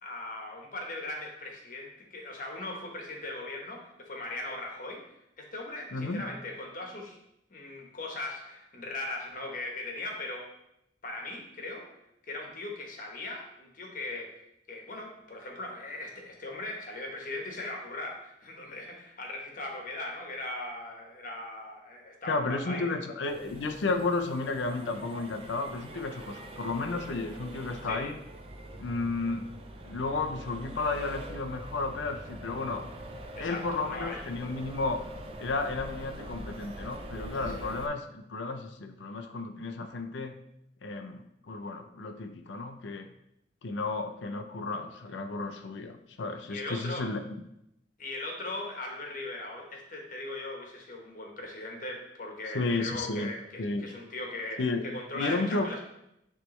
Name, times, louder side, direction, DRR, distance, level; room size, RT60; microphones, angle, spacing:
voice 1, 0.0-7.2 7.5-10.5 11.0-11.9 12.2-14.4 14.7-23.0 27.8-28.1 33.4-34.2 37.5-37.7 46.5-47.1 48.0-55.8, left 2 dB, 45° left, 0 dB, 1.2 m, -39 dB
voice 2, 5.9-6.2 22.3-28.2 28.8-29.5 29.8-32.9 33.4-35.0 35.4-40.4 40.8-43.1 43.6-47.2 52.5-53.3 53.6-53.9 54.6-54.8 55.1-55.7, left 3 dB, 85° left, 6 dB, 0.6 m, -33 dB
Accelerating revving vroom, 23.3-37.9, right 1 dB, 30° right, 0.5 m, -44 dB
9.1 x 3.3 x 3.2 m, 0.81 s
head